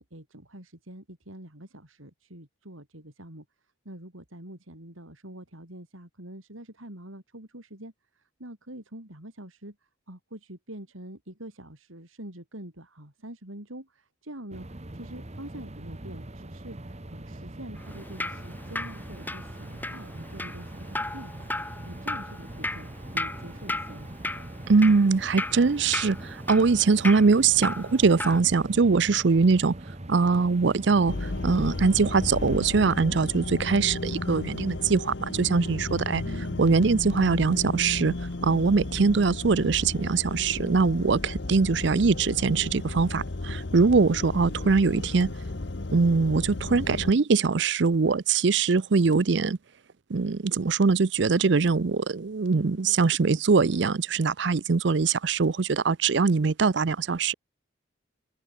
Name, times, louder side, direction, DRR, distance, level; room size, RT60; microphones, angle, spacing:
voice 1, 0.0-24.2 36.2-36.6 52.5-53.0, right 1 dB, 90° right, 6.0 m, -45 dB
sound 1, 14.5-32.9, right 1 dB, 35° right, 1.3 m, -42 dB
Drip, 17.8-28.4, left 2 dB, 10° left, 2.0 m, -36 dB
voice 2, 24.7-29.8 30.1-36.2 36.6-38.1 38.4-45.3 45.9-49.6 50.1-57.3, right 4 dB, 60° right, 0.5 m, -22 dB
sound 2, 31.1-47.1, left 2 dB, 60° left, 1.0 m, -34 dB
head